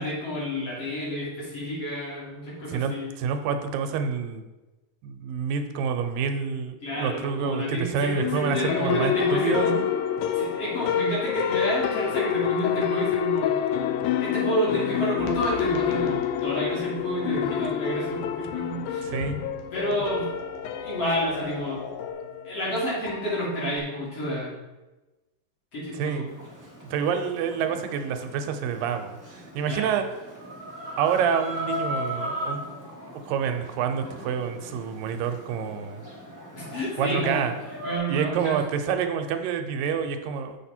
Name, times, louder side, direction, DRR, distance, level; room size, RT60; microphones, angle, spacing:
voice 1, 0.0-3.1 6.8-9.8 10.3-13.6 14.2-19.1 19.7-20.3 20.7-21.8 22.4-24.5 25.7-26.2 29.7-29.9 36.5-37.4 37.8-38.6, equal, 45° left, -8 dB, 4.0 m, -30 dB
voice 2, 3.2-4.4 5.0-9.9 19.0-19.4 26.0-26.3 26.9-30.0 31.0-32.6 33.2-36.0 37.0-37.5 38.1-40.6, right 7 dB, 85° right, 6 dB, 2.4 m, -28 dB
sound 1, 8.2-23.8, left 9 dB, 90° left, 1.6 m, -28 dB
sound 2, 15.2-22.1, left 5 dB, 70° left, 1.6 m, -42 dB
Chicken rooster, 26.3-38.0, equal, 10° left, 1.2 m, -38 dB
7.4 x 6.5 x 4.3 m, 1.1 s
omnidirectional pair, 3.9 m